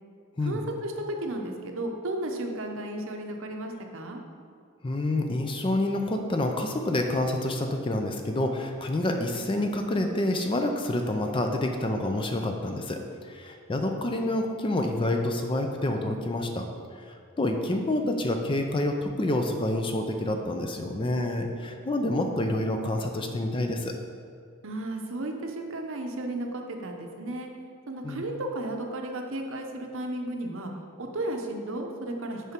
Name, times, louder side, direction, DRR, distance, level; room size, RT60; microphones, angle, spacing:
voice 1, 0.4-4.2 24.6-27.5 27.9-30.7 31.0-32.5, right 1 dB, 60° right, 3 dB, 0.7 m, -34 dB
voice 2, 4.8-13.0 13.3-16.7 17.0-23.9 28.0-28.2, left 1 dB, 25° left, 4 dB, 0.4 m, -28 dB
6.7 x 4.9 x 4.4 m, 2.4 s
head